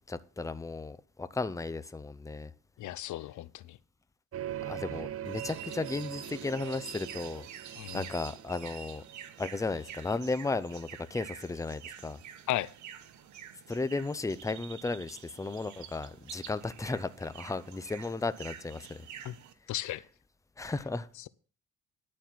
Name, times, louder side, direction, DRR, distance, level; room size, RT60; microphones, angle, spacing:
voice 1, 0.1-2.5 4.6-9.0 9.4-12.2 13.7-19.1 20.6-21.1, left 3 dB, 10° left, 0.7 m, -35 dB
voice 2, 2.8-3.8 7.8-8.1 12.5-12.7 19.2-19.3 19.7-20.0 20.6-20.7, left 14 dB, 75° left, 0.6 m, -35 dB
sound 1, 4.3-9.9, right 12 dB, 50° right, 0.6 m, -42 dB
sound 2, 5.2-19.5, right 9 dB, 75° right, 1.1 m, -48 dB
11.5 x 4.3 x 7.5 m
cardioid pair, 90°, 30 cm